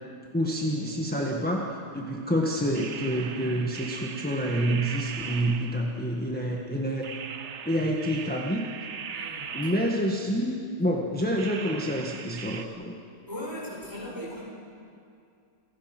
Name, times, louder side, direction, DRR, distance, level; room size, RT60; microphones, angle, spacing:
voice 1, 0.3-7.1 7.6-8.6 9.5-12.9, equal, 5° left, -2 dB, 1.4 m, -28 dB
sound 1, 2.7-6.1 7.0-10.4 11.4-12.7, right 6 dB, 50° right, 1.1 m, -39 dB
voice 2, 9.1-9.7 13.3-14.4, equal, 10° right, -5 dB, 4.5 m, -38 dB
29.0 x 16.5 x 6.1 m, 2.5 s
omnidirectional pair, 1.8 m